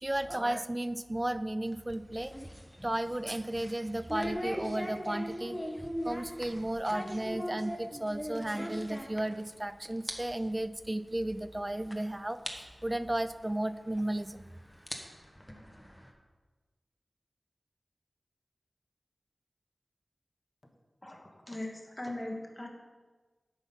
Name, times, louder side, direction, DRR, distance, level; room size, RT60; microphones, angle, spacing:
voice 1, 0.0-2.3 2.8-5.6 6.0-14.4, right 1 dB, 20° right, 13 dB, 0.4 m, -34 dB
sound 1, 1.7-9.6 9.9-10.1 10.5-10.6 11.3-11.4 11.9-12.0 12.5-12.6 13.9-14.0 14.7-16.1, equal, 5° left, 1.2 m, -40 dB
voice 2, 21.0-22.7, left 1 dB, 25° left, 2 dB, 1.5 m, -40 dB
9.8 x 6.1 x 5.5 m, 1.3 s
wide cardioid pair, 75°, 0 cm